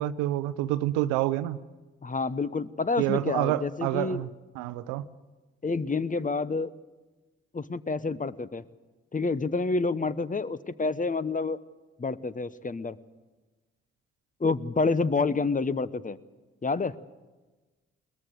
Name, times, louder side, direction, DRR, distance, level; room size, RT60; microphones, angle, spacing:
voice 1, 0.0-1.6 3.0-4.3 4.5-5.0, right 14 dB, 85° right, 0.7 m, -28 dB
voice 2, 2.0-4.2 5.6-6.7 7.5-8.6 9.1-11.6 12.0-13.0 14.4-16.2 16.6-17.0, left 3 dB, 25° left, 1.0 m, -28 dB
21.5 x 19.5 x 7.9 m
hypercardioid pair, 45°, 31 cm